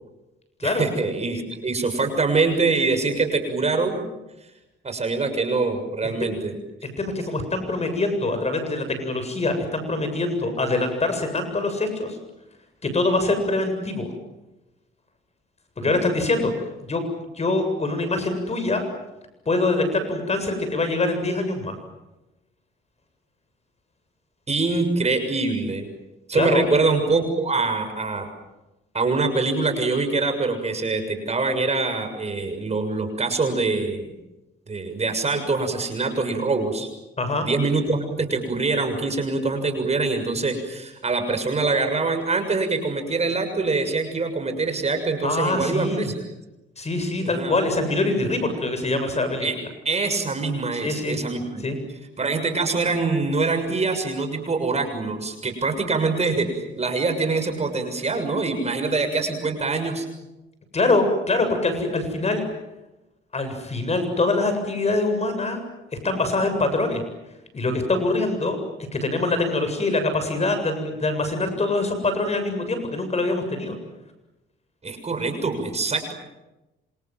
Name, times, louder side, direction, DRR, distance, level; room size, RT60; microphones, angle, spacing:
voice 1, 0.6-4.0 4.8-6.6 15.8-15.9 24.5-25.9 26.3-28.3 28.9-34.1 34.7-36.9 37.4-46.1 47.2-47.6 49.4-49.5 49.8-51.6 52.2-56.5 56.8-60.1 74.8-76.1, right 3 dB, 35° right, 6 dB, 6.8 m, -24 dB
voice 2, 6.8-12.2 12.8-14.1 15.8-16.5 16.8-17.0 17.4-18.8 19.5-21.7 26.3-26.6 37.2-37.5 45.2-46.1 46.8-49.5 50.8-51.2 51.6-51.8 60.7-62.4 63.3-65.6 66.0-67.0 67.5-68.6 68.9-73.8, left 2 dB, 35° left, 7 dB, 7.6 m, -24 dB
27.5 x 27.5 x 7.7 m, 1.0 s
cardioid pair, 90°, 20 cm